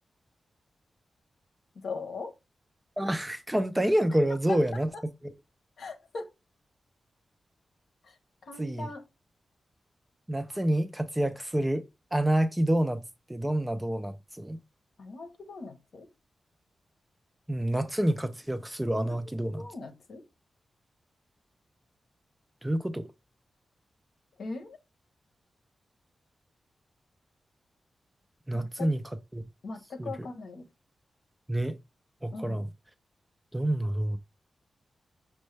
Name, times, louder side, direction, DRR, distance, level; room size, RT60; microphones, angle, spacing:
voice 1, 1.8-2.3 4.5-4.6 4.9-5.0 5.8-6.3 8.0-8.1 8.5-9.0 15.0-16.1 19.0-19.2 19.6-20.2 24.4-24.8 28.5-28.9 29.6-30.6 32.3-32.6, left 3 dB, 75° left, 0.9 m, -39 dB
voice 2, 3.0-4.9 5.2-5.3 8.6-8.9 10.3-11.9 12.1-13.0 13.3-14.6 17.5-19.6 22.6-23.1 28.5-29.0 29.3-29.4 30.0-30.3 31.5-31.8 32.2-32.7 33.5-34.2, right 1 dB, 10° right, 0.3 m, -28 dB
6.1 x 2.1 x 3.2 m
wide cardioid pair, 160°, 0 cm